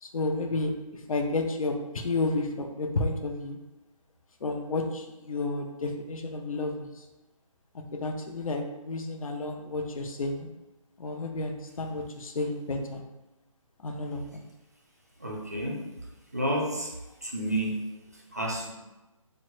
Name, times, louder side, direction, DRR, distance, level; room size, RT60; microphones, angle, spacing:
voice 1, 0.0-3.6 4.4-7.1 8.0-10.5 11.0-13.0 13.8-14.4, left 2 dB, 85° left, 4 dB, 0.6 m, -31 dB
voice 2, 15.2-15.9 16.3-16.9 17.2-17.8 18.3-18.7, right 1 dB, 30° right, -1 dB, 0.3 m, -30 dB
3.4 x 2.0 x 3.1 m, 1.0 s
hypercardioid pair, 175°, 17 cm